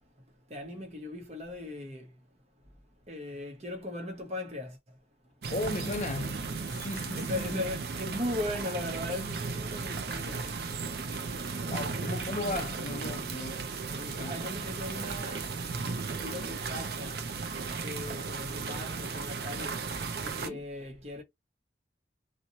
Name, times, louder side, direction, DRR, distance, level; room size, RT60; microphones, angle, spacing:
voice 1, 0.5-2.1 3.1-4.8 7.2-10.5 13.9-15.4 16.2-17.2 17.8-19.8 20.2-21.2, left 1 dB, 35° right, 0.8 m, -38 dB
sound 1, 5.4-20.5, right 4 dB, 55° right, 0.4 m, -35 dB
voice 2, 5.5-7.6 11.7-13.7 14.0-14.4 20.4-20.6, left 2 dB, 40° left, 0.5 m, -36 dB
2.9 x 2.2 x 2.7 m
head